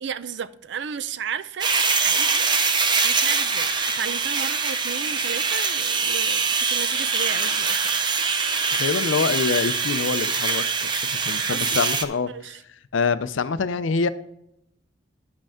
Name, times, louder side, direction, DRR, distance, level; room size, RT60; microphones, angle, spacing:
voice 1, 0.0-2.5 3.0-8.1 11.5-11.9 12.3-12.6, right 7 dB, 60° right, 0.5 m, -34 dB
sound 1, 1.6-12.0, right 5 dB, 25° right, 0.6 m, -23 dB
voice 2, 8.7-12.3 12.9-14.1, left 4 dB, 80° left, 0.5 m, -25 dB
10.5 x 7.7 x 3.6 m
head